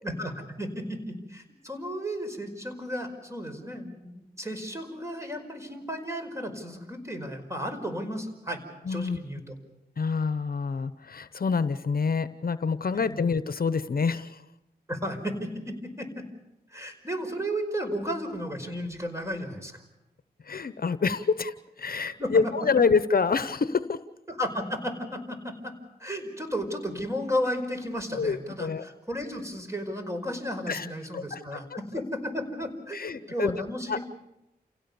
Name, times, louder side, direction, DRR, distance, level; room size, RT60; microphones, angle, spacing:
voice 1, 0.0-8.6 8.9-9.5 12.9-13.2 14.9-15.6 16.0-16.1 16.7-19.8 22.2-22.3 24.3-25.7 26.0-31.6 31.9-34.0, equal, 15° right, 5 dB, 5.2 m, -34 dB
voice 2, 8.8-9.2 10.0-14.4 20.4-24.0 28.1-28.8 30.7-30.9 31.1-31.6 32.9-33.6 33.9-34.0, left 5 dB, 60° left, 13 dB, 0.9 m, -27 dB
28.5 x 17.0 x 7.0 m, 0.90 s
cardioid pair, 50°, 17 cm